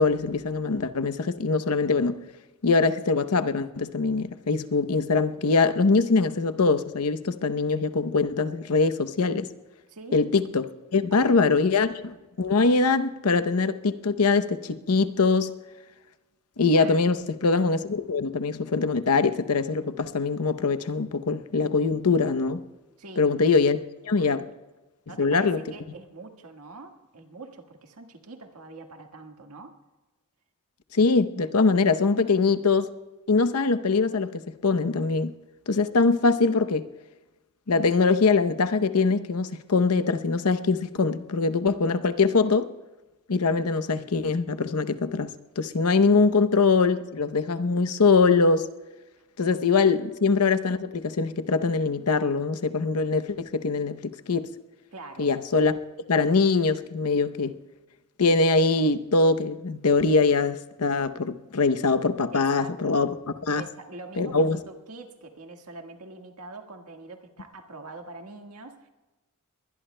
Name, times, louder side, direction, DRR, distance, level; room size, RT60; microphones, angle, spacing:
voice 1, 0.0-2.2 2.6-9.5 10.1-15.5 16.6-22.6 23.2-23.8 24.1-24.4 25.2-25.6 30.9-32.9 33.3-35.3 35.7-36.9 37.7-42.7 43.3-48.7 49.4-54.5 55.2-55.7 56.1-57.5 58.2-63.1 63.5-63.6 64.2-64.6, left 4 dB, 85° left, 0.8 m, -23 dB
voice 2, 11.1-11.6 16.7-17.1 23.0-23.3 24.1-24.4 25.1-29.7 54.9-55.3 62.3-62.9 63.5-68.9, right 3 dB, 80° right, 1.6 m, -44 dB
22.5 x 20.5 x 2.2 m
head